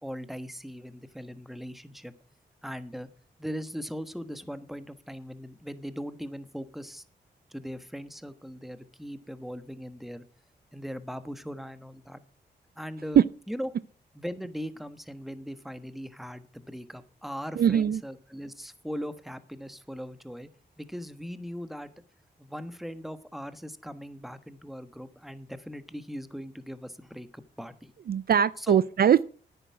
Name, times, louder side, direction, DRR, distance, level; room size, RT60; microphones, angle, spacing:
voice 1, 0.0-2.1 2.6-3.1 3.4-7.0 7.5-10.2 10.7-12.2 12.8-13.7 14.1-20.5 20.8-21.9 22.4-27.9 28.6-28.8, equal, ahead, 1.3 m, -39 dB
voice 2, 17.6-18.0 28.1-29.2, right 9 dB, 55° right, 0.4 m, -21 dB
10.0 x 9.0 x 6.0 m
cardioid pair, 65°, 19 cm